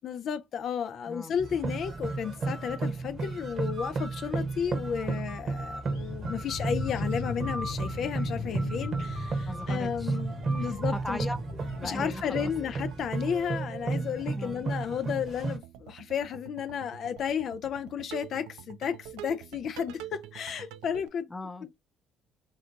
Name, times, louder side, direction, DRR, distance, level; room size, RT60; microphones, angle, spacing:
voice 1, 0.0-11.3 11.8-21.3, left 8 dB, 60° left, 0.3 m, -33 dB
sound 1, 1.4-15.6, right 3 dB, 50° right, 0.9 m, -33 dB
sound 2, 5.9-11.9, left 3 dB, 85° left, 0.9 m, -38 dB
voice 2, 9.5-10.2 10.6-12.5 14.3-14.6 21.3-21.8, left 1 dB, 15° left, 0.6 m, -39 dB
sound 3, 10.1-21.1, right 12 dB, 80° right, 0.3 m, -48 dB
3.3 x 2.7 x 2.4 m
hypercardioid pair, 55°, 0 cm